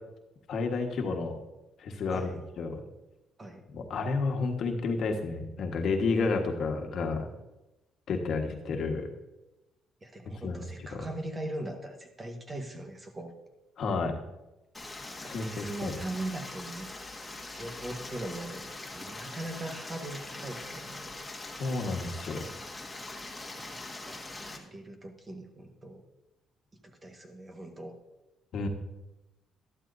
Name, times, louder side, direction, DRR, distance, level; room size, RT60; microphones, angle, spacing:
voice 1, 0.5-1.4 1.8-2.3 2.6-2.8 3.7-7.3 8.1-9.1 10.4-10.6 10.9-11.1 13.8-14.1 15.3-15.9 21.6-22.4 28.5-28.7, left 4 dB, 65° left, 4 dB, 1.5 m, -30 dB
voice 2, 2.1-2.4 3.4-3.6 10.0-13.3 15.1-21.1 23.5-23.8 24.1-26.0 26.8-28.0, right 1 dB, 25° right, 4 dB, 1.5 m, -40 dB
Stream, 14.7-24.6, left 2 dB, 10° left, 1.8 m, -42 dB
13.0 x 12.0 x 2.7 m, 0.98 s
cardioid pair, 100°, 0 cm